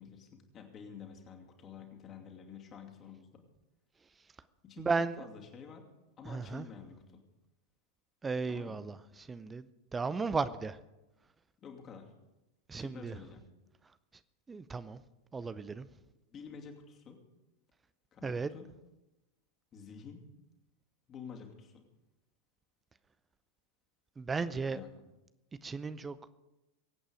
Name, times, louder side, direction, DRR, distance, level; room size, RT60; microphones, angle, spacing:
voice 1, 0.0-3.4 4.6-5.8 6.2-7.2 8.5-8.9 11.6-12.1 12.7-13.4 16.3-17.2 18.1-18.7 19.7-20.2 21.1-21.8 24.7-24.9, left 6 dB, 25° left, 2.5 m, -49 dB
voice 2, 4.8-5.3 6.3-6.6 8.2-9.7 9.9-10.8 12.7-13.1 14.5-15.0 15.3-15.9 18.2-18.5 24.2-24.8 25.6-26.3, right 4 dB, 15° right, 0.6 m, -35 dB
23.0 x 8.8 x 5.1 m
figure-of-eight pair, 90°, 0 cm